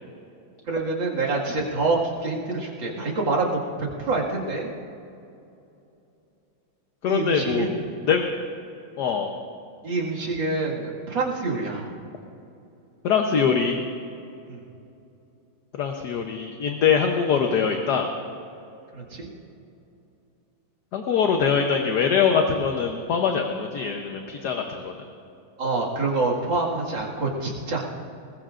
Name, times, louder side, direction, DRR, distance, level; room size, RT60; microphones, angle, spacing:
voice 1, 0.7-4.7 7.1-8.0 9.8-11.9 14.5-14.6 18.9-19.3 25.6-27.8, right 3 dB, 70° right, -3 dB, 2.8 m, -26 dB
voice 2, 7.0-7.7 8.1-8.2 9.0-9.3 13.0-13.8 15.8-18.1 20.9-24.9, left 6 dB, 60° left, 3 dB, 1.3 m, -23 dB
21.0 x 20.0 x 2.5 m, 2.7 s
omnidirectional pair, 2.2 m